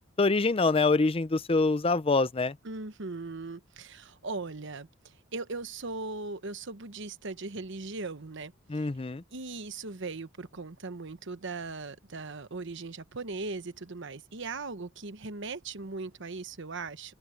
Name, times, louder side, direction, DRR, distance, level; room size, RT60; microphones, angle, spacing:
voice 1, 0.2-2.6 8.7-9.2, left 3 dB, 25° left, 0.6 m, -25 dB
voice 2, 2.6-8.9 9.3-17.1, right 3 dB, 60° right, 1.1 m, -39 dB
open air
head